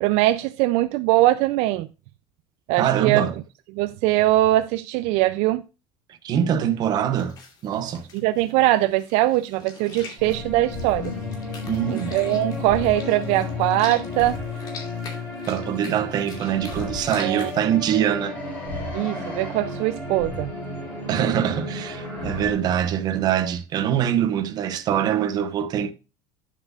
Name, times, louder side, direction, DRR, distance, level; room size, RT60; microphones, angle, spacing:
voice 1, 0.0-1.9 2.7-3.2 3.8-5.6 8.1-11.1 11.9-14.4 17.2-17.5 18.9-20.5, right 16 dB, 65° right, 0.4 m, -21 dB
voice 2, 2.8-3.4 6.2-7.4 7.6-8.1 11.7-12.1 15.5-18.4 21.1-25.9, right 9 dB, 35° right, 0.9 m, -23 dB
sound 1, 7.1-17.7, left 4 dB, 35° left, 2.4 m, -44 dB
sound 2, 10.2-22.5, left 2 dB, 15° left, 3.5 m, -33 dB
9.2 x 7.4 x 2.4 m
cardioid pair, 175°, 12 cm